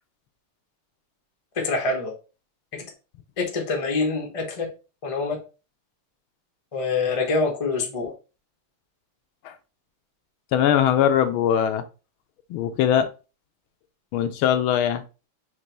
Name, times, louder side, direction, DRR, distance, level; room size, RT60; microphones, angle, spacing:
voice 1, 1.6-2.1 2.7-2.8 3.4-4.7 5.0-5.4 6.7-8.1, left 3 dB, 40° left, 1 dB, 0.5 m, -25 dB
voice 2, 10.5-11.8 12.5-13.1 14.1-15.0, left 9 dB, 80° left, 9 dB, 1.4 m, -21 dB
5.4 x 2.9 x 3.2 m, 0.32 s
omnidirectional pair, 2.4 m